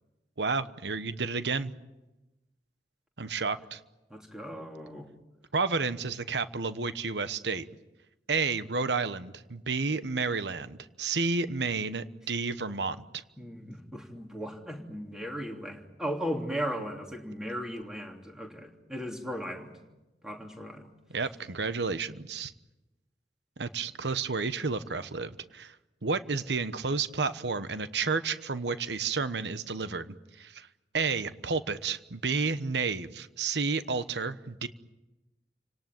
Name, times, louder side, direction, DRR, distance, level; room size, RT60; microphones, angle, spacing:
voice 1, 0.4-1.7 3.2-3.8 5.5-7.7 8.3-13.2 21.1-22.5 23.6-25.8 26.0-30.7 30.9-34.7, right 4 dB, 80° right, 12 dB, 1.1 m, -31 dB
voice 2, 4.1-5.1 13.4-19.8 20.2-20.9, equal, 5° right, 2 dB, 3.1 m, -37 dB
30.0 x 18.5 x 9.2 m, 1.1 s
head